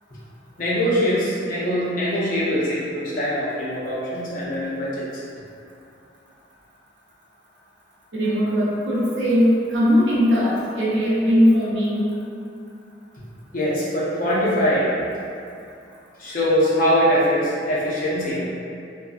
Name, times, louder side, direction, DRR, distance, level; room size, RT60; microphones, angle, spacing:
voice 1, 0.6-5.2 13.5-14.9 16.2-18.4, equal, 50° left, -7 dB, 0.6 m, -22 dB
voice 2, 8.1-12.1, equal, 80° right, -8 dB, 0.7 m, -19 dB
2.5 x 2.3 x 2.5 m, 2.5 s
head